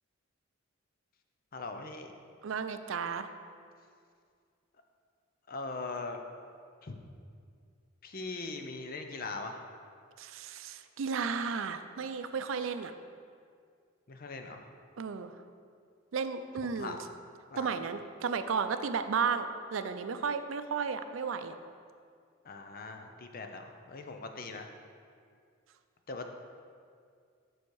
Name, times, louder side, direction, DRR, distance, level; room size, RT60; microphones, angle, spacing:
voice 1, 1.5-2.1 5.5-6.2 6.8-7.0 8.0-9.6 14.1-14.6 16.6-17.0 17.5-17.8 22.4-24.7 26.1-26.3, left 3 dB, 45° left, 5 dB, 0.6 m, -40 dB
voice 2, 2.4-3.3 10.2-12.9 15.0-15.3 16.1-17.0 17.6-21.6, right 5 dB, 80° right, 10 dB, 0.4 m, -33 dB
7.0 x 6.3 x 4.7 m, 2.2 s
head